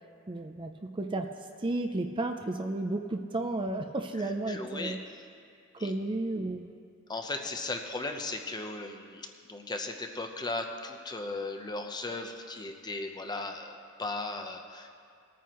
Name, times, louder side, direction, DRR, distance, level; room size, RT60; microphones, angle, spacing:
voice 1, 0.3-1.3 1.6-5.0 5.7-6.7, right 2 dB, 25° right, 5 dB, 0.5 m, -33 dB
voice 2, 4.2-5.2 5.8-5.9 7.1-14.9, left 2 dB, 20° left, 4 dB, 0.8 m, -37 dB
20.5 x 9.3 x 3.1 m, 2.2 s
head